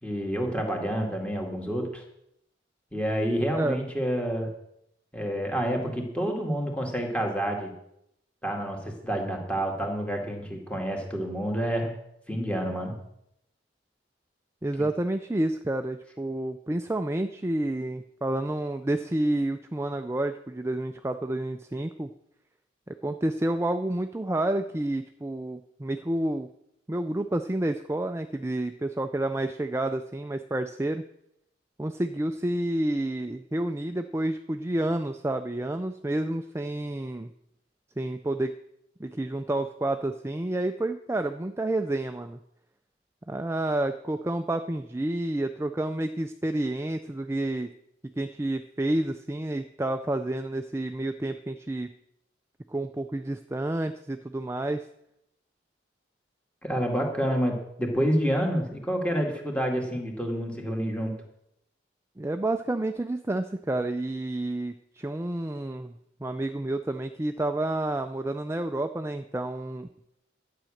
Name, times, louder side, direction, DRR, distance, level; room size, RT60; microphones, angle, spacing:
voice 1, 0.0-2.0 2.9-4.5 5.1-7.7 8.4-11.9 12.3-13.0 56.6-61.1, equal, 5° left, 1 dB, 2.2 m, -28 dB
voice 2, 14.6-22.1 22.9-26.5 26.9-31.0 31.8-37.3 38.0-38.6 39.0-42.4 43.3-47.7 48.2-51.9 52.7-54.8 62.2-65.9 66.2-69.9, right 1 dB, 15° right, 7 dB, 0.4 m, -29 dB
12.0 x 8.6 x 6.5 m, 0.78 s
head